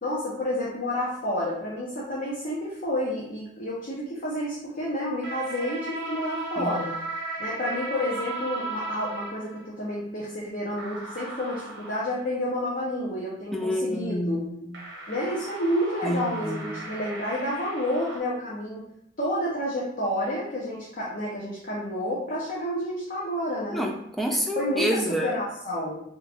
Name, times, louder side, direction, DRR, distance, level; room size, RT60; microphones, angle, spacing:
voice 1, 0.0-6.9 7.4-14.4 15.1-18.8 19.2-23.9 24.6-26.0, left 1 dB, 45° left, -5 dB, 0.7 m, -30 dB
sound 1, 5.2-9.7 10.8-12.1 14.7-18.2, right 2 dB, 70° right, 0.9 m, -36 dB
voice 2, 13.5-14.8 16.0-16.8 23.7-25.3, equal, ahead, 1 dB, 0.4 m, -28 dB
3.0 x 2.4 x 3.4 m, 0.73 s
head